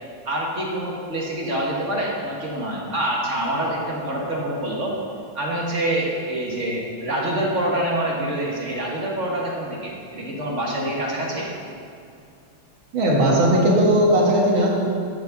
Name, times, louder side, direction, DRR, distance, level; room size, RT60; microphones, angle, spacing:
voice 1, 0.2-5.0 5.3-11.5, right 1 dB, 40° right, -3 dB, 1.6 m, -26 dB
voice 2, 12.9-14.7, right 1 dB, 70° right, -3 dB, 2.5 m, -17 dB
11.5 x 5.3 x 6.9 m, 2.5 s
omnidirectional pair, 2.3 m